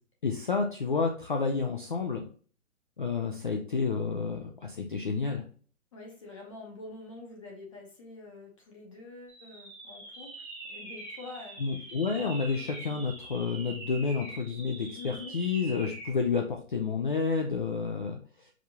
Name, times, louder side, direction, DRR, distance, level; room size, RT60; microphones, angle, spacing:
voice 1, 0.2-2.3 3.0-5.4 11.6-18.5, left 5 dB, 40° left, 2 dB, 0.4 m, -30 dB
voice 2, 5.9-12.3 12.5-13.1 14.9-15.4, left 3 dB, 25° left, -1 dB, 0.8 m, -47 dB
sound 1, 9.3-16.2, right 2 dB, 5° right, 0.8 m, -44 dB
4.9 x 3.4 x 2.7 m, 0.42 s
hypercardioid pair, 160°, 42 cm